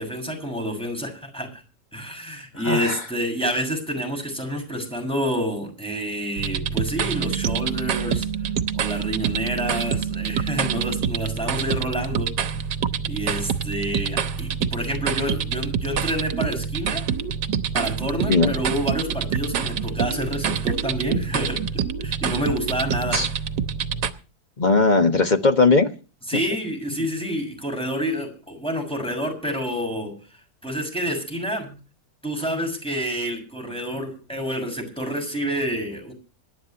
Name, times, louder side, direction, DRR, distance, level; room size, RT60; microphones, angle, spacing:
voice 1, 0.0-1.6 1.9-8.3 8.7-12.3 13.0-17.0 17.7-23.3 26.3-30.1 30.6-31.8 32.2-36.1, equal, 5° left, 3 dB, 6.4 m, -28 dB
voice 2, 2.5-3.0 18.3-18.5 23.1-23.3 24.6-25.9, left 3 dB, 25° left, 7 dB, 1.3 m, -18 dB
sound 1, 6.4-24.1, right 7 dB, 75° right, 1.7 m, -26 dB
26.5 x 11.5 x 2.9 m, 0.36 s
omnidirectional pair, 1.9 m